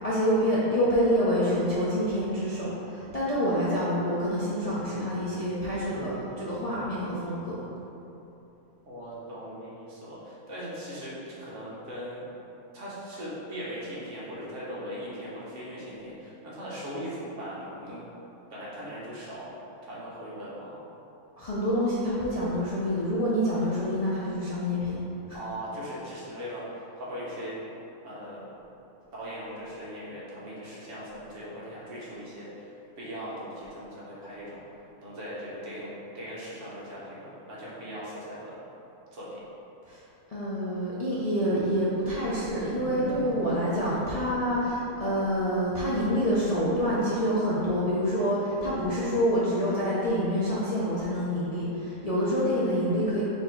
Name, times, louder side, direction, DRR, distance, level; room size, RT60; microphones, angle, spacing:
voice 1, 0.0-7.6 21.4-25.0 25.3-25.4 39.9-40.0 40.3-53.2, equal, 65° left, -10 dB, 0.3 m, -27 dB
voice 2, 8.9-12.2 12.7-18.0 18.5-19.6 19.8-20.9 25.3-27.6 28.0-28.4 29.1-34.6 35.0-38.6 39.1-39.4, equal, 60° right, -7 dB, 1.2 m, -39 dB
sound 1, 42.3-46.9, equal, ahead, 1.2 m, -41 dB
4.0 x 2.7 x 4.5 m, 2.9 s
omnidirectional pair, 1.5 m